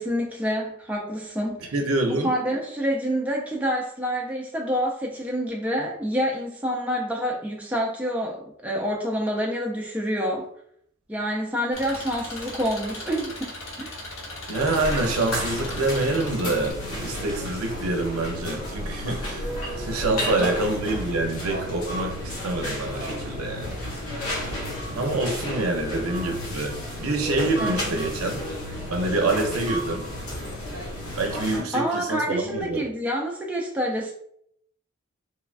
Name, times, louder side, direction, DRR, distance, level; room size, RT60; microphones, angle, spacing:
voice 1, 0.0-1.7 2.1-10.5 11.1-13.5 13.8-14.0 20.1-20.5 27.6-28.0 31.7-34.1, equal, 5° right, -1 dB, 0.3 m, -27 dB
voice 2, 1.7-2.3 14.5-19.5 19.8-23.8 24.9-26.7 27.0-28.4 28.9-30.0 31.2-32.8, right 2 dB, 85° right, 3 dB, 0.6 m, -26 dB
Engine, 11.7-16.7, left 2 dB, 65° left, 0.7 m, -38 dB
sound 1, 14.5-31.6, left 1 dB, 85° left, 1.0 m, -32 dB
3.2 x 2.2 x 2.4 m, 0.69 s
head